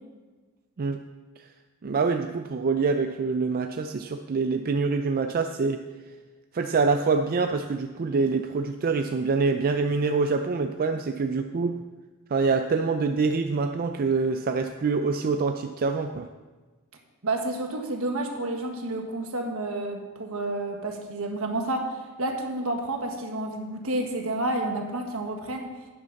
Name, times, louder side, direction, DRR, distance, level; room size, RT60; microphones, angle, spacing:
voice 1, 1.8-5.8 6.5-11.8 12.3-16.3, right 4 dB, 45° right, 6 dB, 0.4 m, -25 dB
voice 2, 17.2-25.7, right 2 dB, 70° right, 3 dB, 1.5 m, -30 dB
11.5 x 9.4 x 4.0 m, 1.3 s
head